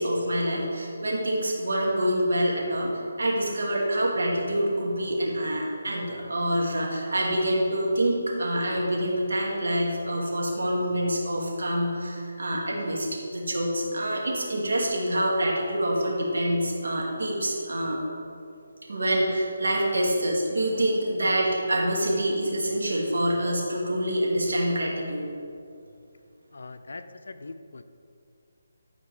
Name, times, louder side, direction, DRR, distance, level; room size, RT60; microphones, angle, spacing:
voice 1, 0.0-2.9 3.2-18.0 18.9-25.3, right 1 dB, 75° right, -3 dB, 2.3 m, -26 dB
voice 2, 26.5-27.8, left 3 dB, 75° left, 9 dB, 0.5 m, -41 dB
12.0 x 4.5 x 4.9 m, 2.5 s
hypercardioid pair, 165°, 0 cm